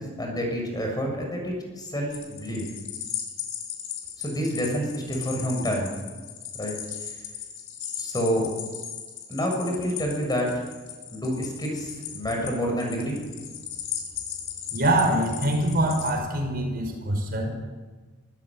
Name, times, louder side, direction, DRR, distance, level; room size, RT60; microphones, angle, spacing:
voice 1, 0.0-2.7 4.2-6.0 6.6-6.7 8.0-8.5 9.3-10.6 11.1-13.2, equal, 20° left, 1 dB, 6.8 m, -28 dB
sound 1, 2.1-16.1, left 9 dB, 90° left, 5.5 m, -37 dB
voice 2, 14.7-17.5, right 1 dB, 45° right, 3 dB, 5.6 m, -24 dB
24.5 x 16.0 x 9.0 m, 1.4 s
head